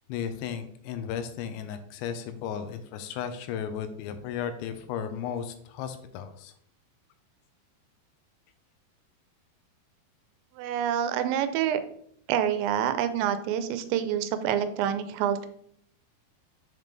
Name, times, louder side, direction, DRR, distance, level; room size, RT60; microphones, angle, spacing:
voice 1, 0.1-6.5, left 8 dB, 85° left, 8 dB, 3.0 m, -35 dB
voice 2, 10.6-11.8 12.3-15.5, right 9 dB, 85° right, 10 dB, 2.8 m, -27 dB
7.4 x 5.2 x 3.2 m, 0.66 s
omnidirectional pair, 5.2 m